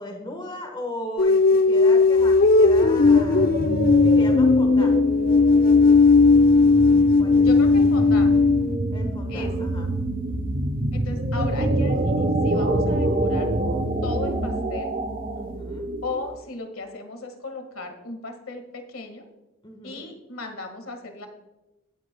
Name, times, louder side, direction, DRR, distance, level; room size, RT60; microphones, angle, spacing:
voice 1, 0.0-3.5 4.0-5.0 7.2-7.4 8.9-10.4 15.3-15.9 19.6-20.1, left 1 dB, 25° left, 2 dB, 1.3 m, -37 dB
sound 1, 1.2-8.8, left 3 dB, 45° left, 0.3 m, -17 dB
sound 2, 2.2-16.3, right 1 dB, 45° right, 0.9 m, -27 dB
voice 2, 7.4-8.4 9.3-9.7 10.9-13.5 14.0-14.9 16.0-19.3 19.8-21.3, left 3 dB, 85° left, 6 dB, 1.7 m, -36 dB
18.0 x 7.9 x 2.2 m, 0.99 s
head